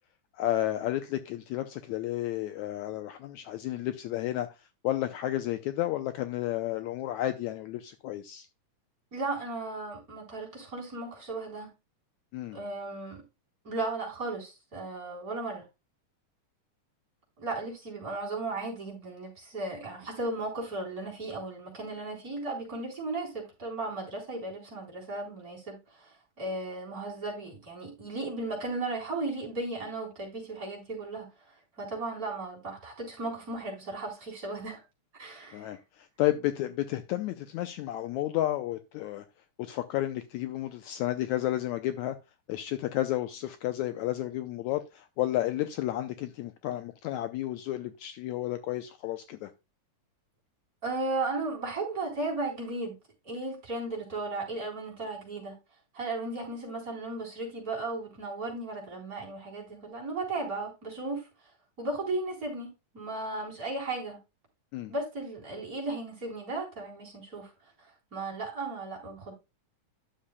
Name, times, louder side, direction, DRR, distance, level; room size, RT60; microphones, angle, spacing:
voice 1, 0.3-8.5 12.3-12.6 35.5-39.2 39.6-42.2 42.5-49.5 64.7-64.9, left 14 dB, 80° left, 1.8 m, -32 dB
voice 2, 9.1-11.7 12.5-13.2 13.6-15.6 17.4-31.3 31.8-34.8 35.2-35.8 50.8-53.0 53.2-55.6 55.9-61.3 61.8-62.7 62.9-64.2 64.9-67.5 68.1-69.3, right 2 dB, 25° right, 4.2 m, -35 dB
11.5 x 7.2 x 2.2 m
omnidirectional pair, 3.7 m